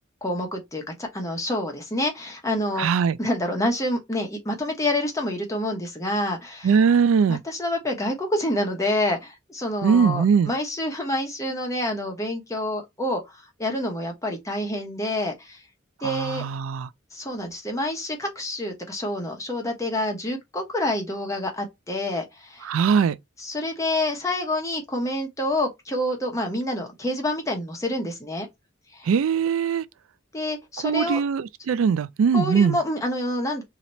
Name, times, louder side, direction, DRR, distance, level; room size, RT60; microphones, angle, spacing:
voice 1, 0.2-2.9 3.2-6.7 7.3-15.6 16.0-16.4 17.1-22.8 23.4-28.5 28.9-29.1 30.3-31.2 32.3-33.6, left 1 dB, 15° left, 1.0 m, -27 dB
voice 2, 2.8-3.2 6.6-7.4 9.8-10.5 16.0-16.9 22.6-23.2 29.0-29.9 30.8-32.8, right 6 dB, 85° right, 0.3 m, -21 dB
2.9 x 2.8 x 4.2 m
head